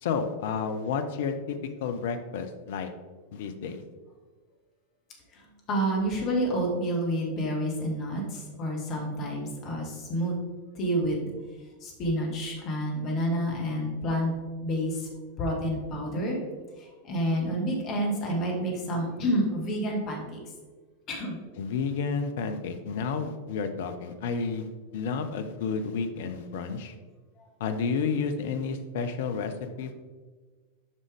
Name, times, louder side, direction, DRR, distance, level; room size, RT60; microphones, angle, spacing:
voice 1, 0.0-2.9 3.3-3.8 21.6-26.9 27.6-30.0, left 5 dB, 55° left, 7 dB, 0.6 m, -31 dB
voice 2, 5.3-10.3 10.8-11.3 11.8-14.3 14.6-15.1 15.4-16.4 16.8-20.4 21.1-21.4 27.4-27.5, equal, 35° left, -1 dB, 1.7 m, -29 dB
8.2 x 5.4 x 3.5 m, 1.4 s
figure-of-eight pair, 90°, 0 cm